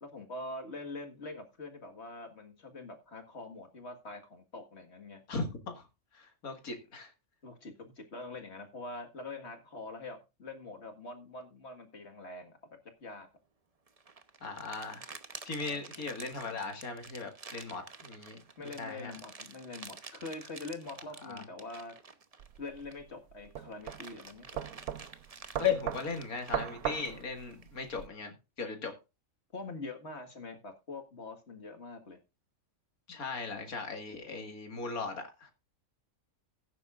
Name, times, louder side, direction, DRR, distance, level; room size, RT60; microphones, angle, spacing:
voice 1, 0.0-5.2 7.4-13.3 15.6-16.0 18.6-22.0 22.6-24.6 29.5-32.2, left 2 dB, 50° left, 2.0 m, -44 dB
voice 2, 5.3-5.9 6.1-7.1 14.4-15.1 15.4-18.4 18.8-19.1 21.2-21.4 25.6-28.9 33.1-35.5, left 5 dB, 85° left, 2.4 m, -37 dB
sound 1, 13.9-23.1 23.5-27.7, right 4 dB, 30° right, 0.9 m, -50 dB
sound 2, 22.4-28.1, right 9 dB, 80° right, 1.2 m, -39 dB
16.5 x 9.1 x 2.5 m
omnidirectional pair, 1.5 m